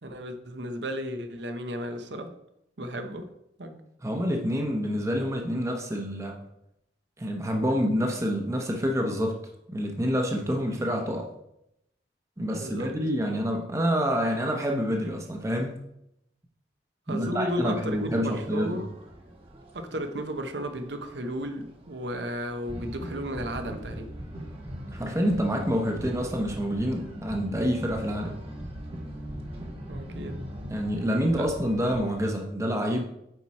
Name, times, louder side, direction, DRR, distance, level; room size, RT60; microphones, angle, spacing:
voice 1, 0.0-2.3 2.8-3.3 3.6-3.8 12.4-12.9 17.1-18.9 19.7-24.1 29.9-30.4 31.4-31.5, equal, 80° right, 7 dB, 0.9 m, -34 dB
voice 2, 4.0-6.4 7.2-9.4 9.7-11.3 12.4-15.8 17.1-18.8 24.9-28.4 30.7-33.0, equal, 15° right, 2 dB, 0.8 m, -27 dB
sound 1, 17.5-32.2, equal, 35° right, 1.3 m, -40 dB
9.1 x 4.6 x 4.2 m, 0.81 s
head